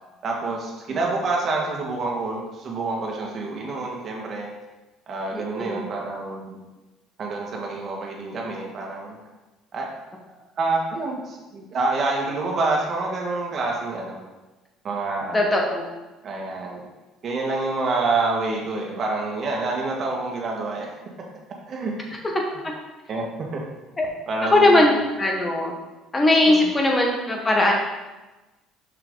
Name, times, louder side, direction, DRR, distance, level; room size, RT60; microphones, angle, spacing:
voice 1, 0.2-4.5 5.1-6.6 7.2-9.2 9.7-9.9 10.6-14.2 14.8-15.5 16.2-16.8 17.2-20.9 21.7-21.9 23.1-23.2 23.5-23.6 24.3-25.0 26.5-26.7, right 3 dB, 40° right, -1 dB, 1.9 m, -27 dB
voice 2, 5.3-5.8 15.3-15.8 22.6-22.7 24.0-24.1 24.4-25.7 26.1-27.7, left 1 dB, 20° left, 0 dB, 1.6 m, -19 dB
6.6 x 5.9 x 4.0 m, 1.1 s
cardioid pair, 110°, 0 cm